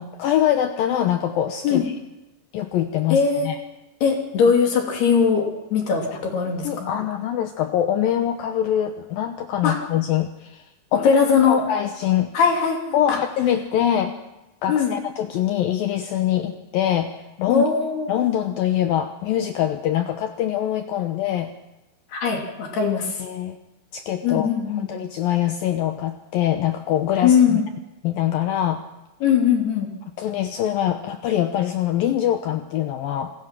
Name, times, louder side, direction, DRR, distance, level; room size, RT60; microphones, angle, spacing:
voice 1, 0.0-1.9 2.5-3.6 6.6-10.6 10.9-11.2 11.5-12.3 12.9-14.1 14.6-17.7 18.1-21.5 23.2-23.6 23.9-24.5 24.8-27.6 28.0-28.8 30.2-33.3, left 11 dB, 85° left, 7 dB, 2.0 m, -24 dB
voice 2, 3.1-3.5 4.0-7.0 9.6-9.8 10.9-11.6 12.3-12.8 13.1-13.2 14.7-14.9 17.5-18.1 22.1-23.2 24.2-24.9 27.2-27.6 29.2-29.9, left 6 dB, 60° left, 1 dB, 4.6 m, -20 dB
27.5 x 20.0 x 6.0 m, 0.99 s
omnidirectional pair, 5.5 m